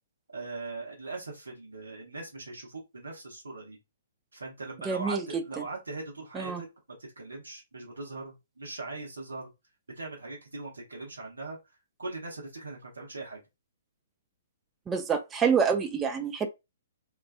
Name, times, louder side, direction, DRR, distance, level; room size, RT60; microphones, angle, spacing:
voice 1, 0.3-3.8 4.3-6.7 7.2-9.5 10.0-11.6 12.0-13.4, right 3 dB, 75° right, 0.7 m, -40 dB
voice 2, 4.9-5.2 6.3-6.6 14.9-16.5, right 6 dB, 15° right, 0.3 m, -27 dB
2.3 x 2.3 x 2.4 m
figure-of-eight pair, 125°, 0 cm